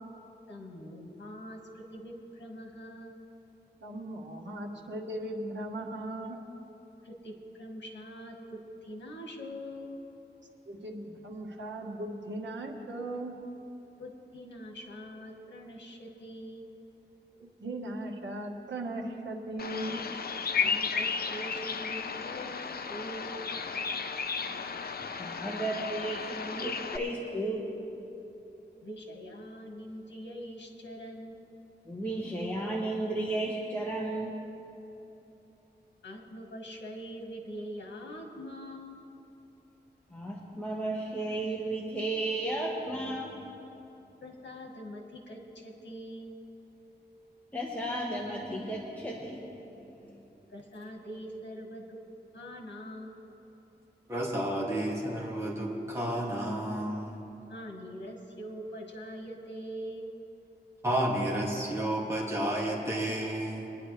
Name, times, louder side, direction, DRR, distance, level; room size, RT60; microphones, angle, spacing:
voice 1, 0.5-3.2 7.0-10.0 14.0-16.6 20.6-23.4 28.8-31.4 36.0-39.0 44.2-46.4 50.5-52.0 52.3-53.1 57.5-60.1, equal, 85° left, 1 dB, 1.6 m, -43 dB
voice 2, 3.8-6.4 10.7-13.4 17.4-20.3, right 1 dB, 85° right, 0 dB, 1.4 m, -38 dB
Bird vocalization bird call bird song, 19.6-27.0, left 5 dB, 60° left, 0.6 m, -34 dB
voice 3, 25.2-27.7 31.8-34.4 40.1-43.4 47.5-49.5 49.7-50.2, right 1 dB, 10° left, -3 dB, 1.3 m, -34 dB
voice 4, 54.1-57.2 60.8-63.7, right 1 dB, 15° right, -5 dB, 2.3 m, -31 dB
23.5 x 10.0 x 3.3 m, 3.0 s
wide cardioid pair, 130°, 18 cm